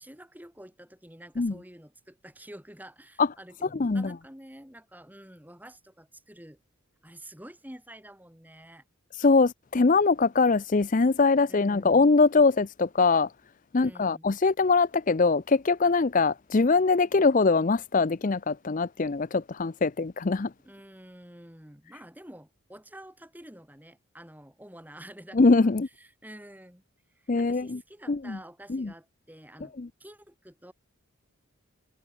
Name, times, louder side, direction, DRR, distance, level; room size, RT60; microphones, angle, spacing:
voice 1, 0.0-6.6 7.0-8.8 11.5-12.0 13.7-14.3 20.6-25.7 26.0-26.8 27.2-29.7 30.0-30.7, right 1 dB, 10° right, 3.5 m, -49 dB
voice 2, 3.8-4.1 9.1-13.3 13.7-20.5 25.3-25.9 27.3-27.8 28.1-28.4 28.7-28.9 29.8-29.9, left 4 dB, 35° left, 0.5 m, -22 dB
head